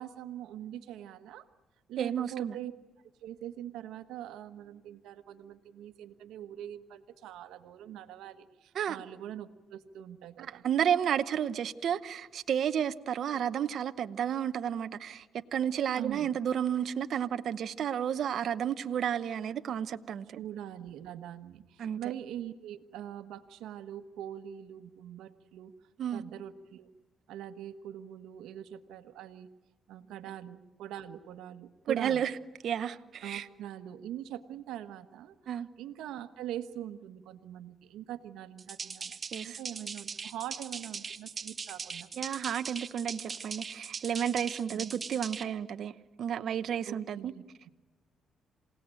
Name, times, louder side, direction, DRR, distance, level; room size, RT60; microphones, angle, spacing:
voice 1, 0.0-1.4 1.9-2.7 3.2-10.6 15.9-16.3 20.3-25.7 26.1-26.9 27.3-29.5 29.9-32.2 33.2-35.3 35.8-42.1 44.7-44.9 46.8-47.4, right 11 dB, 90° right, 1.3 m, -43 dB
voice 2, 2.0-2.5 8.7-9.0 10.4-20.4 21.8-22.0 26.0-26.2 31.9-32.3 32.6-33.5 35.5-35.7 39.3-39.6 42.2-47.3, right 9 dB, 65° right, 0.9 m, -32 dB
sound 1, 38.6-45.4, right 5 dB, 40° right, 1.2 m, -40 dB
27.5 x 18.0 x 9.0 m
cardioid pair, 90°, 0 cm